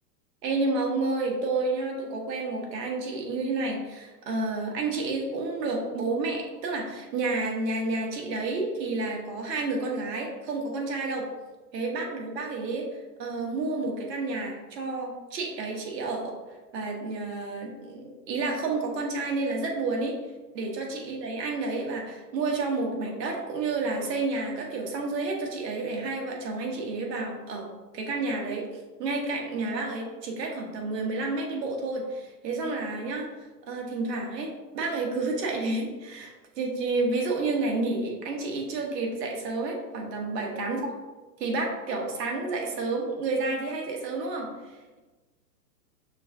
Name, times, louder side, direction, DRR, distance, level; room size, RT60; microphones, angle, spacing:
voice 1, 0.4-11.2 11.7-12.8 13.2-16.3 16.7-20.1 20.5-27.7 27.9-28.6 29.0-33.3 33.7-40.8 41.4-44.5, right 3 dB, 75° right, 0 dB, 1.1 m, -30 dB
5.7 x 2.4 x 2.6 m, 1.2 s
hypercardioid pair, 170°, 49 cm